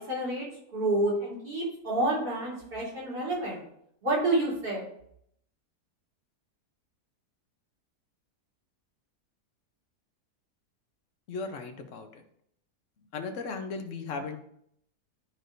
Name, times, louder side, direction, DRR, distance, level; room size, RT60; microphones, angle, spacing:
voice 1, 0.1-0.5 0.7-3.6 4.0-4.9, right 2 dB, 85° right, -4 dB, 3.7 m, -29 dB
voice 2, 11.3-12.2 13.1-14.4, left 4 dB, 55° left, 5 dB, 1.1 m, -36 dB
12.0 x 4.8 x 2.6 m, 0.72 s
omnidirectional pair, 1.7 m